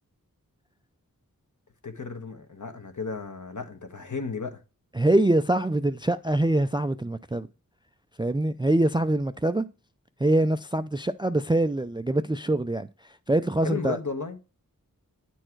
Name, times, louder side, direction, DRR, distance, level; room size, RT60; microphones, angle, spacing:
voice 1, 1.8-4.6 13.6-14.4, left 4 dB, 55° left, 1.3 m, -34 dB
voice 2, 5.0-7.5 8.2-9.7 10.2-12.9 13.3-14.0, right 1 dB, 15° right, 0.4 m, -24 dB
9.8 x 4.5 x 4.5 m
wide cardioid pair, 65°, 35 cm